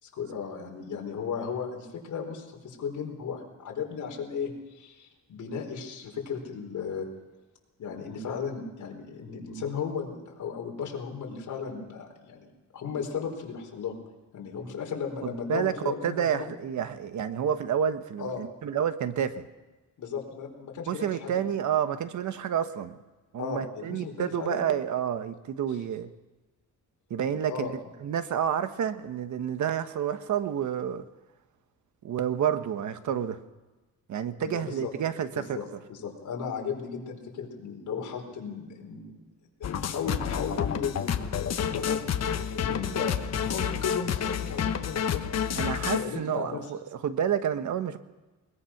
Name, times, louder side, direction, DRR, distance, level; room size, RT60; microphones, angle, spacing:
voice 1, 0.0-7.1 7.8-13.9 14.3-16.5 18.2-18.5 20.0-21.5 23.4-24.6 27.3-27.7 34.4-34.9 35.3-39.2 39.6-42.0 42.5-45.2 45.9-46.6, left 6 dB, 70° left, 1 dB, 4.4 m, -35 dB
voice 2, 15.2-15.7 16.0-19.4 20.9-22.9 23.3-26.1 27.1-27.7 28.0-31.0 32.0-33.4 34.1-35.6 45.5-48.0, right 9 dB, 70° right, 10 dB, 1.2 m, -29 dB
sound 1, 39.6-46.0, left 8 dB, 55° left, 1.2 m, -29 dB
21.5 x 21.0 x 5.9 m, 1.2 s
wide cardioid pair, 175°, 31 cm